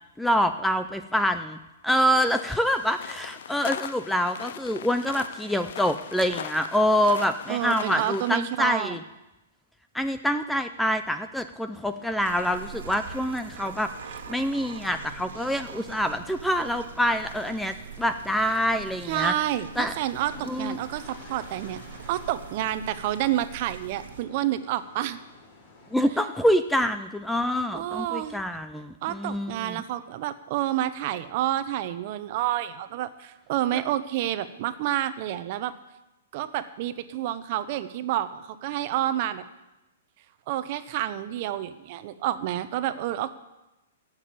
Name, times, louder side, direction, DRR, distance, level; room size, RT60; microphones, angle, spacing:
voice 1, 0.2-1.6 1.8-9.0 9.9-19.3 19.8-19.9 20.5-20.8 25.9-29.8, equal, ahead, 9 dB, 0.4 m, -26 dB
sound 1, 2.1-8.4, left 9 dB, 65° left, 0.6 m, -40 dB
voice 2, 7.5-9.0 19.1-21.8 22.1-25.2 27.7-28.4 29.0-35.7 36.3-39.4 40.5-43.3, right 13 dB, 40° right, 12 dB, 0.8 m, -29 dB
sound 2, 11.7-26.0, left 3 dB, 35° left, 3.5 m, -51 dB
sound 3, 12.2-24.2, right 7 dB, 80° right, 1.4 m, -43 dB
15.0 x 6.5 x 8.5 m, 1.0 s
hypercardioid pair, 155°, 0 cm